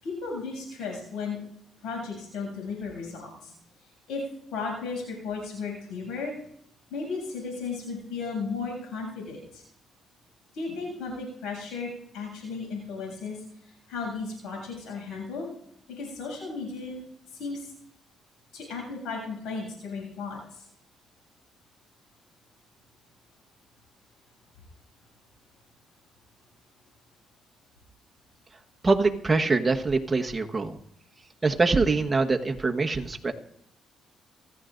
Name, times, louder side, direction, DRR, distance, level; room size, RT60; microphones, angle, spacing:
voice 1, 0.0-1.4 1.8-3.5 4.1-4.2 4.5-6.3 6.9-9.6 10.5-15.5 15.9-17.0 17.3-17.7 18.5-20.6, left 4 dB, 90° left, -1 dB, 7.3 m, -35 dB
voice 2, 28.8-30.8 31.4-33.3, right 3 dB, 25° right, 3 dB, 1.3 m, -24 dB
25.5 x 14.5 x 2.6 m, 0.70 s
cardioid pair, 90°, 0 cm